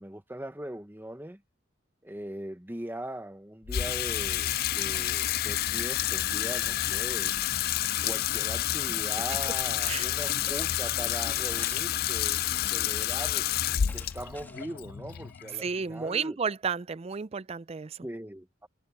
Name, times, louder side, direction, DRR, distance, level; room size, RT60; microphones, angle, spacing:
voice 1, 0.0-1.4 2.0-7.3 8.0-13.5 13.9-16.4 18.0-18.7, right 1 dB, 10° right, 1.1 m, -40 dB
Water tap faucet / Sink (filling or washing), 3.7-16.1, left 12 dB, 50° left, 0.4 m, -29 dB
sound 1, 9.8-12.1 13.4-16.1, left 2 dB, 10° left, 1.8 m, -51 dB
voice 2, 15.6-18.0, right 5 dB, 30° right, 0.4 m, -32 dB
head